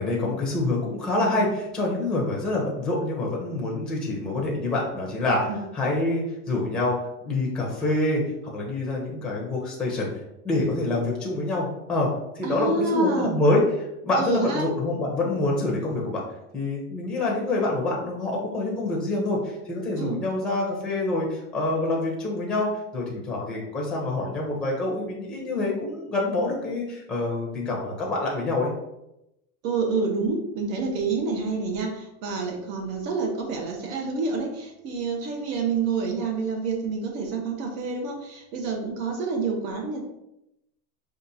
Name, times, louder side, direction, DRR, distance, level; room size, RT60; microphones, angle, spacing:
voice 1, 0.0-7.0 7.2-8.2 8.5-10.1 10.4-12.1 12.3-16.2 16.5-22.7 22.9-28.7, left 2 dB, ahead, -2 dB, 0.6 m, -26 dB
voice 2, 12.4-13.3 14.1-14.7 20.0-20.2 29.6-40.0, right 4 dB, 70° right, 2 dB, 1.1 m, -28 dB
5.0 x 2.5 x 2.7 m, 0.86 s
supercardioid pair, 155°, 41 cm